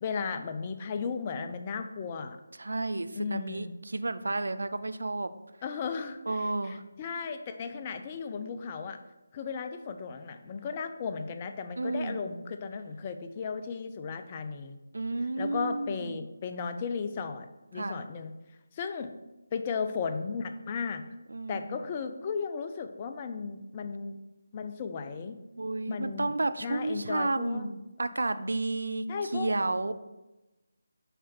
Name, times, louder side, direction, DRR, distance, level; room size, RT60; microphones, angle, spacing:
voice 1, 0.0-2.4 3.1-3.7 5.6-9.0 9.3-14.8 15.4-18.3 18.7-19.1 19.5-21.0 21.5-24.2 24.5-25.4 25.9-26.3 26.6-27.7 29.1-29.5, left 5 dB, 25° left, 7 dB, 0.5 m, -35 dB
voice 2, 2.6-5.3 6.3-6.8 11.8-12.2 14.9-16.2 17.8-18.0 21.3-21.8 25.6-29.1 29.3-29.9, right 2 dB, 75° right, 12 dB, 0.5 m, -31 dB
6.6 x 4.9 x 4.4 m, 1.0 s
figure-of-eight pair, 160°, 0 cm